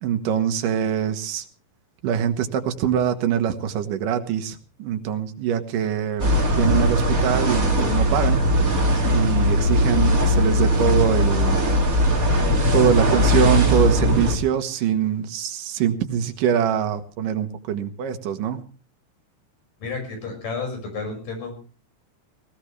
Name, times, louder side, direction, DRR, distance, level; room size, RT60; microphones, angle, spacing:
voice 1, 0.0-1.5 2.0-8.4 9.0-11.6 12.7-18.6, right 8 dB, 85° right, 7 dB, 2.9 m, -23 dB
sound 1, 6.2-14.4, equal, 30° right, 2.7 m, -19 dB
voice 2, 19.8-21.5, left 4 dB, 85° left, 4 dB, 7.2 m, -31 dB
19.0 x 18.0 x 3.3 m, 0.37 s
omnidirectional pair, 3.7 m